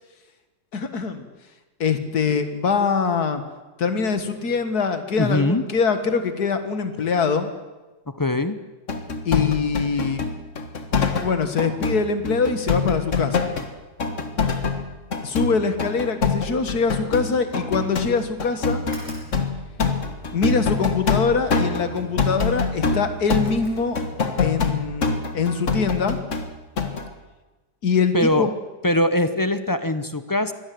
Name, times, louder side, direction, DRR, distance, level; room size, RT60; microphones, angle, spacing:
voice 1, 0.7-1.3 1.8-3.4 3.8-7.5 9.3-10.2 11.2-13.5 15.2-18.9 20.3-24.0 24.4-26.2 27.8-28.5, left 5 dB, 65° left, 9 dB, 2.2 m, -23 dB
voice 2, 5.2-5.6 8.1-8.6 28.1-28.5 28.8-30.5, left 1 dB, 25° left, 11 dB, 0.4 m, -21 dB
sound 1, 8.9-11.3 11.6-13.7 14.0-26.5 26.8-27.1, left 4 dB, 45° left, 1.8 m, -25 dB
sound 2, 18.8-24.4, right 1 dB, 5° left, 5.8 m, -46 dB
23.5 x 17.5 x 7.8 m, 1.2 s
omnidirectional pair, 1.8 m